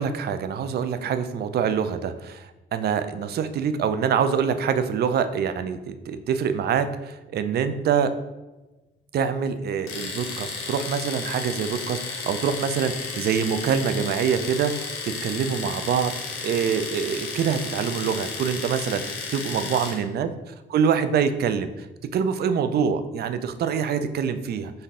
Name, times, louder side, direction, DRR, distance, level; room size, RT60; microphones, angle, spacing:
voice 1, 0.0-8.1 9.1-16.1 16.4-21.9 22.1-24.7, right 7 dB, 55° right, 10 dB, 0.4 m, -25 dB
Domestic sounds home sounds, 9.9-20.0, left 4 dB, 85° left, 0.7 m, -33 dB
3.8 x 2.6 x 3.6 m, 1.1 s
cardioid pair, 90°, 20 cm